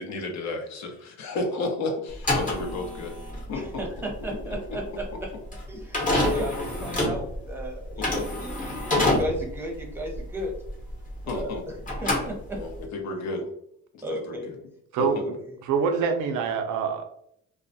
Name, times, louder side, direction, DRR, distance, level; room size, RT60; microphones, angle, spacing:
voice 1, 0.0-3.2 3.5-3.9 4.3-4.8 8.0-8.1 11.2-11.6 12.5-13.5 13.9-14.6 15.0-15.3, left 2 dB, 65° left, 2 dB, 0.7 m, -32 dB
sound 1, 2.1-11.6 11.8-12.8, left 1 dB, 25° left, 0.9 m, -28 dB
voice 2, 3.5-5.0 5.7-6.5 6.8-10.5 11.3-11.5 12.0-12.6 14.0-14.5 15.1-15.3, equal, 5° right, -1 dB, 0.7 m, -34 dB
voice 3, 14.9-15.4 15.7-17.0, right 5 dB, 85° right, 6 dB, 0.5 m, -25 dB
2.3 x 2.1 x 2.6 m, 0.72 s
cardioid pair, 90°, 30 cm